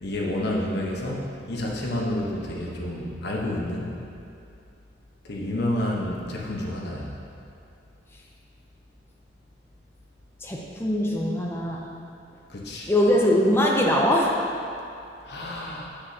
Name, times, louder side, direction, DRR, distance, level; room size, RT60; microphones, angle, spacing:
voice 1, 0.0-3.9 5.3-7.1 12.5-12.9 15.3-15.9, left 1 dB, 60° left, -3 dB, 1.0 m, -29 dB
voice 2, 10.4-11.9 12.9-14.4, left 1 dB, 15° left, -2 dB, 0.6 m, -22 dB
7.7 x 6.7 x 2.8 m, 2.6 s
head